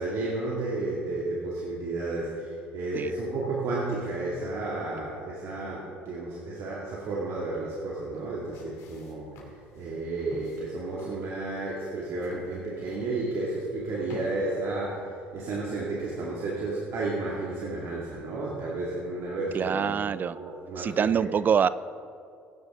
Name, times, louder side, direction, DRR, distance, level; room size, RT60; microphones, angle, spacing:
voice 1, 0.0-15.1 15.3-19.9 20.3-20.9 21.2-21.3, right 2 dB, 60° right, -4 dB, 2.1 m, -32 dB
sound 1, 8.2-14.3, left 4 dB, 70° left, 2.5 m, -50 dB
voice 2, 19.5-20.4 20.8-21.7, right 7 dB, 35° right, 17 dB, 0.3 m, -25 dB
17.5 x 9.8 x 3.7 m, 2.4 s
supercardioid pair, 90°, 5 cm